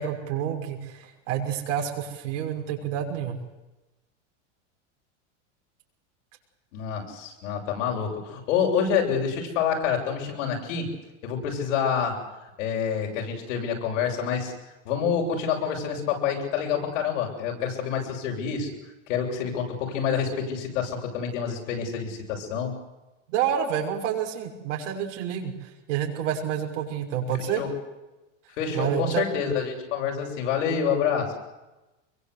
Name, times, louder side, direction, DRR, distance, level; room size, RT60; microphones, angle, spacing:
voice 1, 0.0-3.4 23.3-27.6 28.7-29.3, right 9 dB, 75° right, 1 dB, 6.2 m, -29 dB
voice 2, 6.7-10.9 11.2-12.2 12.6-14.5 14.8-18.7 19.1-22.7 27.6-27.7 28.6-31.3, left 7 dB, 75° left, 1 dB, 8.0 m, -27 dB
24.0 x 23.0 x 8.4 m, 1.0 s
supercardioid pair, 125°, 37 cm